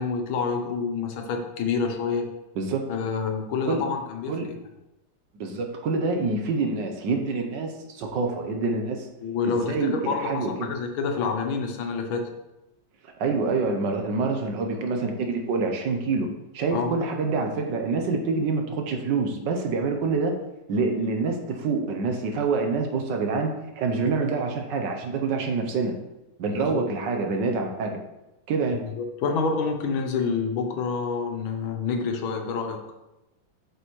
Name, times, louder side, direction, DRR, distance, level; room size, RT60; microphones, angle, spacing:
voice 1, 0.0-2.3 2.9-4.5 9.2-12.3 16.7-16.9 26.5-26.8 29.0-32.8, left 5 dB, 85° left, 4 dB, 1.7 m, -28 dB
voice 2, 2.6-2.9 3.7-3.8 4.3-4.5 5.3-9.1 9.4-10.7 13.0-16.3 16.5-20.4 20.7-25.9 26.4-28.0 28.5-28.8, right 4 dB, 70° right, 4 dB, 1.4 m, -26 dB
7.9 x 5.6 x 3.1 m, 0.94 s
omnidirectional pair, 2.2 m